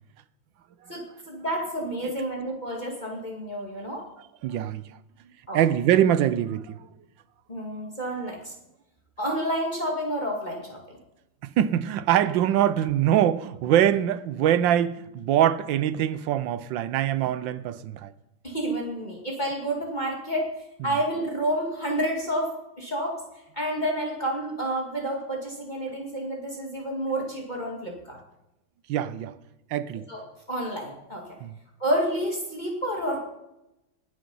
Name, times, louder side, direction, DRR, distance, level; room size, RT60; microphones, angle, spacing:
voice 1, 0.9-4.0 5.5-5.6 7.5-8.5 9.2-11.0 18.4-20.5 20.8-23.2 23.5-28.2 30.1-30.2 30.5-31.3 31.8-33.2, right 1 dB, 20° left, 2.1 m, -29 dB
voice 2, 4.4-5.0 5.5-6.9 11.6-18.1 28.9-29.3 29.7-30.1 31.4-31.5, right 11 dB, 75° right, 1.3 m, -23 dB
18.5 x 6.9 x 5.5 m
omnidirectional pair, 2.2 m